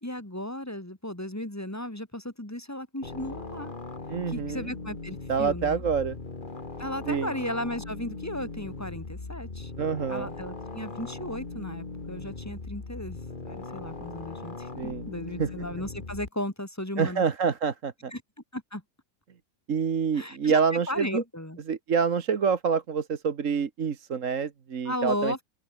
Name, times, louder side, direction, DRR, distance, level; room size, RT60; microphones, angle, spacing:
voice 1, 0.0-3.7 4.3-5.9 6.8-9.7 10.1-13.2 13.4-17.2 18.1-18.2 18.5-18.8 20.1-21.6 24.9-25.4, left 1 dB, 10° left, 2.0 m, -35 dB
sound 1, 3.0-16.3, left 3 dB, 35° left, 2.2 m, -39 dB
voice 2, 4.1-4.7 5.3-6.2 7.1-7.3 9.8-10.3 14.8-15.0 15.4-15.5 17.0-18.1 19.7-21.2 21.7-25.4, right 6 dB, 60° right, 1.7 m, -27 dB
open air
omnidirectional pair, 1.6 m